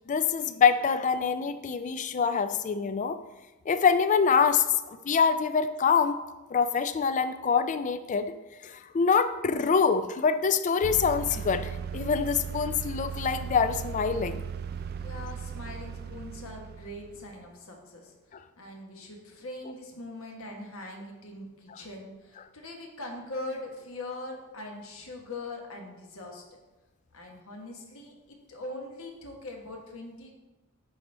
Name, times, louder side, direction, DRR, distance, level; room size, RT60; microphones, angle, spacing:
voice 1, 0.1-3.2 3.7-6.2 6.5-8.3 8.6-14.4 18.3-18.4 21.7-21.8, left 6 dB, 35° left, 11 dB, 0.3 m, -25 dB
sound 1, 10.8-17.4, right 7 dB, 45° right, 0.3 m, -37 dB
voice 2, 15.0-18.1 18.6-26.4 27.1-30.3, left 2 dB, 70° left, 1 dB, 1.3 m, -41 dB
11.0 x 4.3 x 3.3 m, 1.1 s
head